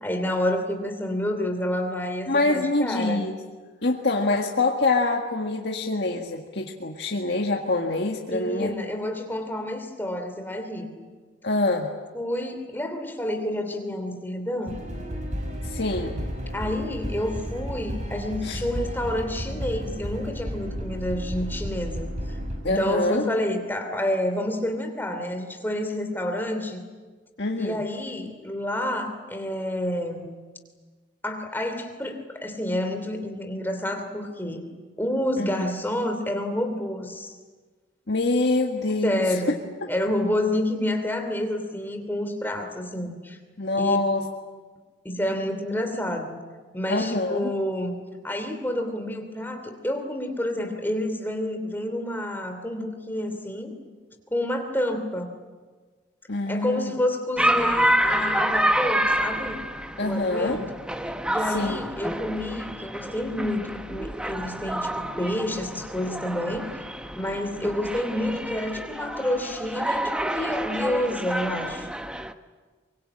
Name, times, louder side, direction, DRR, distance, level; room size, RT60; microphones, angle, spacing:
voice 1, 0.0-3.2 8.3-10.9 12.1-14.8 16.5-22.4 22.7-26.8 27.6-30.3 31.2-34.7 35.0-37.3 39.0-39.6 39.9-43.4 43.7-44.0 45.0-46.4 46.7-47.9 48.2-53.7 54.3-55.4 56.5-59.6 60.0-60.7 61.3-66.7 67.1-71.9, left 1 dB, 10° left, 5 dB, 2.9 m, -29 dB
voice 2, 2.3-3.3 3.8-8.7 11.4-11.9 15.6-16.2 18.4-18.6 22.6-23.2 27.4-27.8 35.4-35.7 38.1-39.2 43.6-44.2 46.9-47.5 56.3-56.9 60.0-60.6 61.5-61.8, left 2 dB, 60° left, 0 dB, 1.8 m, -25 dB
sound 1, 14.7-22.6, equal, 35° right, 4.9 m, -32 dB
sound 2, 57.4-72.3, right 1 dB, 5° right, 0.9 m, -28 dB
24.0 x 23.0 x 8.9 m, 1.4 s
head